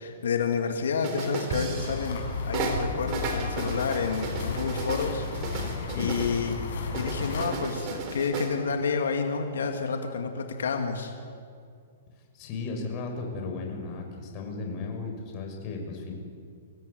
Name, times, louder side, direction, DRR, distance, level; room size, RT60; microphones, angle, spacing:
voice 1, 0.0-5.3 5.6-6.6 6.9-11.1, left 5 dB, 90° left, 4 dB, 2.4 m, -29 dB
sound 1, 1.0-2.2 2.5-6.5 6.9-8.5, right 4 dB, 30° right, 4.2 m, -34 dB
sound 2, 1.8-7.5, left 5 dB, 65° left, 5.8 m, -34 dB
voice 2, 5.9-6.2 12.3-16.1, left 3 dB, 30° left, 2 dB, 5.7 m, -35 dB
24.5 x 17.0 x 9.5 m, 2.3 s
hypercardioid pair, 155°, 0 cm